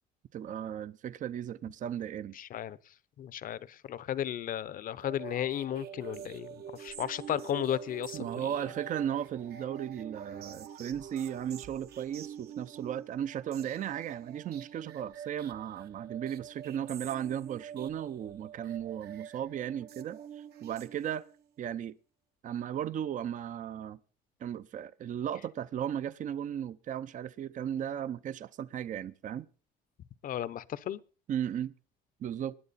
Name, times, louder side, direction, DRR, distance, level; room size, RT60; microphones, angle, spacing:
voice 1, 0.3-2.4 8.1-21.3 21.6-22.0 22.4-24.0 24.4-29.5 31.3-31.7 32.2-32.6, right 9 dB, 50° right, 0.7 m, -36 dB
voice 2, 2.4-2.8 3.2-8.5 30.2-31.0, left 11 dB, 55° left, 0.8 m, -34 dB
sound 1, 5.0-21.4, right 9 dB, 70° right, 1.3 m, -46 dB
20.0 x 10.5 x 4.1 m
cardioid pair, 110°, 17 cm